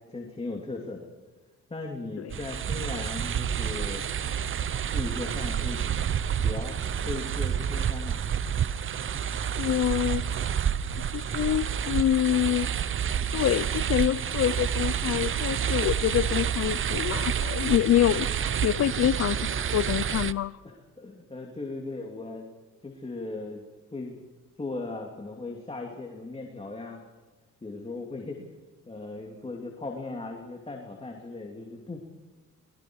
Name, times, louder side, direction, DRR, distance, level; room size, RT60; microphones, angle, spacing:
voice 1, 0.1-1.1 1.7-4.1 4.9-5.8 6.4-6.8 7.0-8.2 20.6-22.5 22.8-23.7 23.9-24.2 24.6-27.0 27.6-28.5 28.9-32.0, left 3 dB, 20° left, 1 dB, 3.0 m, -37 dB
sound 1, 2.3-20.3, right 8 dB, 40° right, 0.8 m, -29 dB
voice 2, 9.6-10.3 11.0-12.7 13.3-20.6, left 11 dB, 55° left, 13 dB, 0.6 m, -26 dB
28.0 x 20.5 x 4.8 m, 1.3 s
cardioid pair, 90°, 30 cm